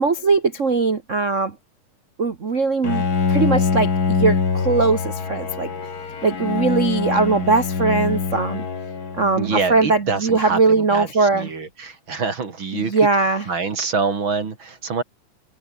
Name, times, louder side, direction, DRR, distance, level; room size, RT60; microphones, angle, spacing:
voice 1, 0.0-1.5 2.2-5.7 6.2-8.6 9.2-11.5 12.7-13.5, right 4 dB, 75° right, 0.7 m, -20 dB
Bowed string instrument, 2.8-9.9, left 5 dB, 35° left, 2.1 m, -24 dB
voice 2, 9.4-13.0 13.5-15.0, right 4 dB, 40° right, 3.0 m, -25 dB
omnidirectional pair, 3.8 m